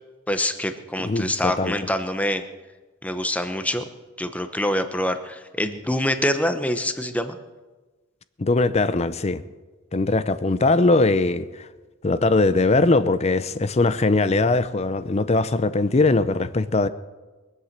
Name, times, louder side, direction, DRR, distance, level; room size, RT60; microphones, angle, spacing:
voice 1, 0.3-2.4 3.0-3.8 4.2-7.4, left 1 dB, 5° left, 0.9 m, -25 dB
voice 2, 1.0-1.8 8.4-9.4 9.9-11.7 12.0-16.9, left 3 dB, 30° left, 0.5 m, -21 dB
22.5 x 8.2 x 7.3 m
head